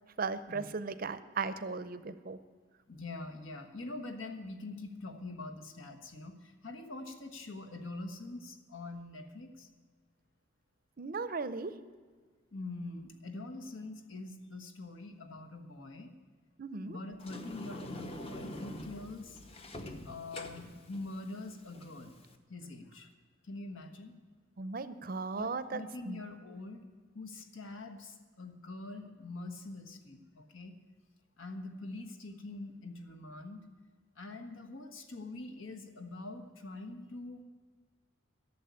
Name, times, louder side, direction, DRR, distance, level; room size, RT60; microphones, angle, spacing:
voice 1, 0.2-2.4 11.0-11.7 16.6-17.0 24.6-26.2, right 4 dB, 45° right, 13 dB, 0.5 m, -37 dB
voice 2, 2.9-9.7 12.5-16.1 16.9-19.4 20.0-22.2 22.5-23.1 23.4-24.2 25.3-26.8 27.1-30.7 31.4-33.6 34.2-37.4, left 2 dB, 75° left, 5 dB, 1.3 m, -44 dB
Sliding door, 17.2-22.4, left 1 dB, 30° left, 0.8 m, -45 dB
12.0 x 7.3 x 9.5 m, 1.5 s
head